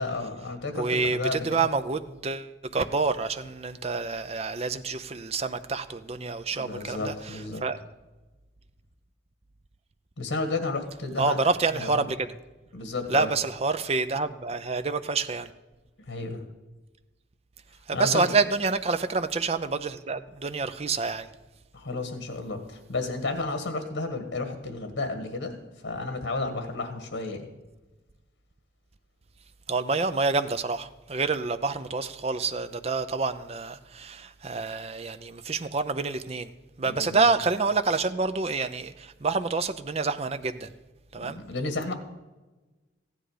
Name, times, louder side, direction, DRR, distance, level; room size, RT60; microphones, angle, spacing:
voice 1, 0.0-1.5 6.5-7.6 10.2-11.4 11.7-11.9 12.7-13.3 16.1-16.4 17.9-18.3 21.7-27.5 36.9-37.2 41.2-41.9, left 3 dB, 85° left, 6 dB, 1.7 m, -32 dB
voice 2, 0.7-7.8 11.2-12.2 13.1-15.5 17.9-21.3 29.7-36.5 36.8-40.7 41.1-41.4, right 4 dB, 35° right, 10 dB, 0.6 m, -28 dB
15.0 x 10.0 x 5.0 m, 1.1 s
head